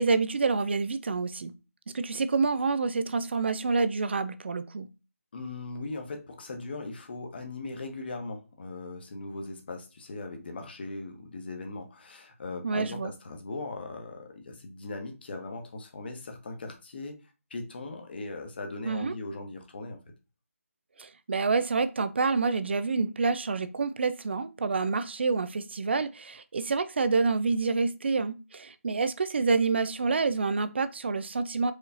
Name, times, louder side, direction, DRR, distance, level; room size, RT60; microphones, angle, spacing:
voice 1, 0.0-1.5 1.9-4.9 12.6-13.1 18.8-19.2 21.0-31.7, right 4 dB, 50° right, 0.4 m, -27 dB
voice 2, 5.3-17.2 17.5-20.0, left 3 dB, 45° left, 1.1 m, -39 dB
4.7 x 3.1 x 2.7 m
figure-of-eight pair, 165°, 8 cm